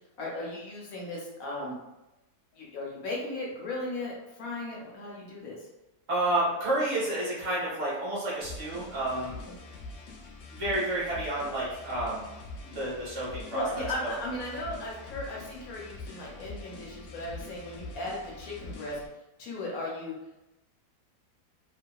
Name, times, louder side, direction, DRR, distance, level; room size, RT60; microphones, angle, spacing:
voice 1, 0.2-1.8 2.5-5.7 13.5-19.0 19.4-20.1, left 1 dB, 70° left, -3 dB, 1.1 m, -36 dB
voice 2, 6.1-9.3 10.5-12.3 12.6-13.6 14.0-14.1, right 1 dB, 50° right, -8 dB, 1.4 m, -30 dB
sound 1, 8.4-19.1, left 3 dB, 90° left, 0.6 m, -44 dB
2.8 x 2.7 x 2.3 m, 0.99 s
omnidirectional pair, 1.7 m